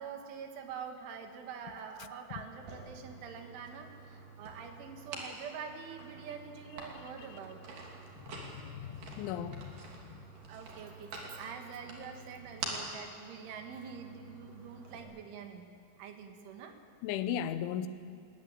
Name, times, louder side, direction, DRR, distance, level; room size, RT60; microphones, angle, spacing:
voice 1, 0.0-7.8 10.5-15.7 16.0-16.8, right 6 dB, 85° right, 4.2 m, -45 dB
sound 1, 2.5-15.0, right 4 dB, 50° right, 4.1 m, -47 dB
voice 2, 8.4-9.6 17.0-17.9, left 9 dB, 85° left, 3.3 m, -36 dB
20.5 x 20.5 x 8.9 m
omnidirectional pair, 5.4 m